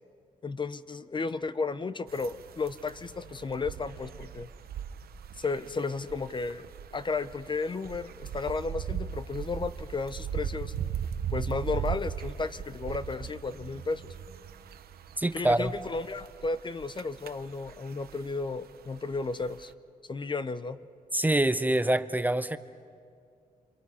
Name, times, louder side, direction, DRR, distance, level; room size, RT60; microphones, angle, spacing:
voice 1, 0.4-4.5 5.4-6.7 6.9-10.7 11.3-14.1 15.3-19.7 20.1-20.8, left 4 dB, 30° left, 13 dB, 0.6 m, -33 dB
sound 1, 2.1-19.7, right 8 dB, 90° right, 0.9 m, -39 dB
voice 2, 15.2-15.7 21.1-22.6, right 1 dB, 10° right, 12 dB, 0.6 m, -25 dB
27.0 x 27.0 x 5.6 m, 2.3 s
cardioid pair, 115°, 16 cm